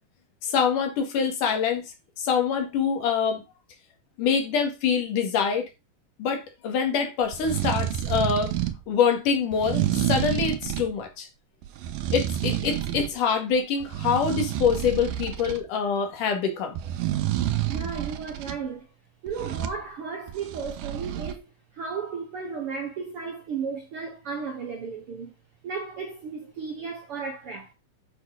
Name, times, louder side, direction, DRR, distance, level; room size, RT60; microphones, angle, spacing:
voice 1, 0.4-3.4 4.2-5.7 6.2-8.5 8.9-11.3 12.1-16.8, left 6 dB, 70° left, 3.4 m, -25 dB
sound 1, 7.2-8.8 9.5-10.9 11.6-13.2 13.5-15.6 16.7-18.6 19.3-19.8 20.3-21.3, right 12 dB, 85° right, 2.7 m, -29 dB
voice 2, 17.7-18.9 19.2-25.3 25.6-27.7, right 5 dB, 60° right, 1.5 m, -34 dB
8.3 x 6.6 x 4.8 m
omnidirectional pair, 4.0 m